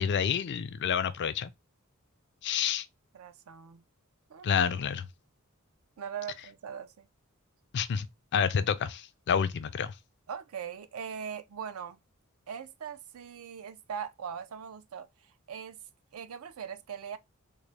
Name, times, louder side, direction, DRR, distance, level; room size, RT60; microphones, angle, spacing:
voice 1, 0.0-1.5 2.4-2.9 4.4-5.1 7.7-8.1 8.3-9.9, left 7 dB, 55° left, 0.4 m, -28 dB
voice 2, 3.1-3.8 4.3-4.6 6.0-7.1 10.3-12.0 12.5-15.8 16.1-17.2, right 7 dB, 70° right, 0.4 m, -41 dB
3.8 x 2.1 x 3.2 m
head